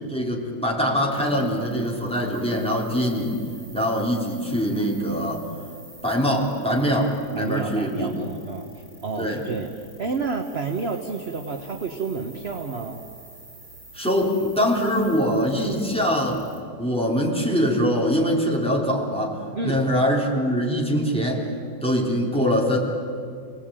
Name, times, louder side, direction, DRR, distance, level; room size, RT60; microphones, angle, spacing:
voice 1, 0.1-3.4 3.7-5.4 6.0-8.1 9.2-9.4 13.9-16.4 16.8-21.5 21.8-22.8, equal, 5° left, -2 dB, 3.7 m, -23 dB
sound 1, 1.1-16.6, right 2 dB, 80° right, 6.6 m, -48 dB
voice 2, 7.4-9.7 10.0-13.0 19.6-19.8, right 4 dB, 40° right, 4 dB, 1.4 m, -30 dB
28.5 x 19.0 x 9.0 m, 2.4 s
omnidirectional pair, 1.8 m